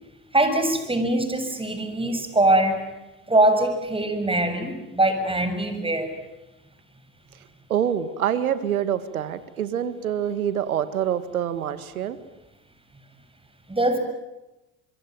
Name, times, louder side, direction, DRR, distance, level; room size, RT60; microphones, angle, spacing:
voice 1, 0.3-2.8 3.3-6.2 13.7-14.0, right 1 dB, 15° right, 8 dB, 6.8 m, -22 dB
voice 2, 7.7-12.2, right 9 dB, 90° right, 13 dB, 1.9 m, -26 dB
25.0 x 24.5 x 9.5 m, 1.0 s
hypercardioid pair, 65°, 42 cm